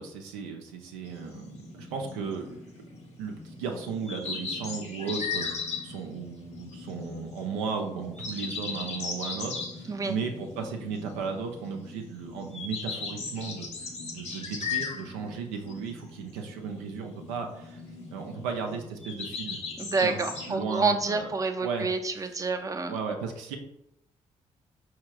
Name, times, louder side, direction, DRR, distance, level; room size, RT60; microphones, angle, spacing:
voice 1, 0.0-2.7 3.2-5.5 5.8-13.7 14.1-17.8 18.1-19.6 20.0-20.2 20.5-21.3 21.6-21.9 22.9-23.6, right 5 dB, 85° right, 3 dB, 0.4 m, -35 dB
sound 1, 1.0-20.6, left 5 dB, 45° left, 0.8 m, -38 dB
voice 2, 9.9-10.2 19.8-23.0, right 3 dB, 20° right, 7 dB, 0.4 m, -28 dB
4.6 x 2.9 x 2.3 m, 0.80 s
hypercardioid pair, 40°, 16 cm